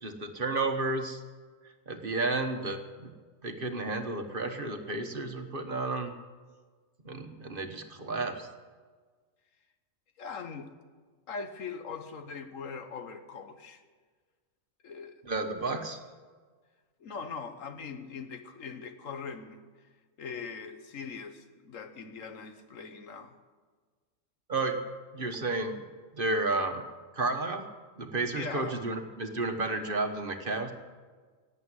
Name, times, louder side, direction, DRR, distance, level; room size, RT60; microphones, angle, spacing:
voice 1, 0.0-1.2 1.9-3.1 3.4-6.1 7.0-8.5 15.2-16.0 24.5-24.8 25.1-25.8 26.1-26.8 27.1-27.6 28.0-30.7, right 3 dB, 45° right, 6 dB, 1.4 m, -32 dB
voice 2, 10.2-10.7 11.3-13.8 14.8-15.2 17.0-19.6 20.2-23.3 28.4-28.8, left 5 dB, 75° left, 8 dB, 1.5 m, -41 dB
17.5 x 8.4 x 9.6 m, 1.5 s
omnidirectional pair, 1.4 m